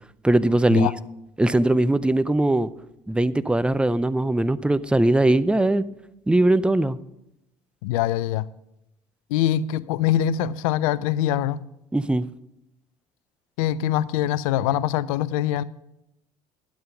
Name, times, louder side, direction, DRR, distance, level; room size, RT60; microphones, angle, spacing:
voice 1, 0.2-0.9 1.4-2.7 3.1-5.9 6.3-7.0 11.9-12.3, right 1 dB, 5° right, 0.5 m, -20 dB
voice 2, 7.8-8.4 9.3-11.6 13.6-15.6, left 11 dB, 80° left, 0.5 m, -23 dB
11.5 x 7.9 x 5.1 m
hypercardioid pair, 65°, 18 cm